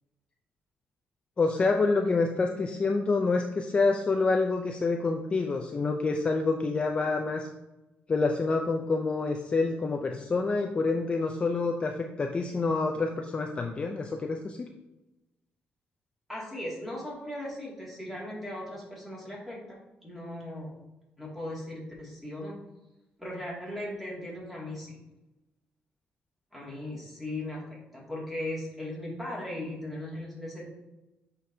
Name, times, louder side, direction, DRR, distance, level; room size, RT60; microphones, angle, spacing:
voice 1, 1.4-7.5 8.1-11.9 12.2-14.7, left 3 dB, 30° left, 2 dB, 0.5 m, -27 dB
voice 2, 16.3-20.7 21.2-22.6 23.2-25.0 26.5-30.7, left 1 dB, 5° right, -5 dB, 2.4 m, -38 dB
7.8 x 5.2 x 2.8 m, 0.99 s
cardioid pair, 135°, 4 cm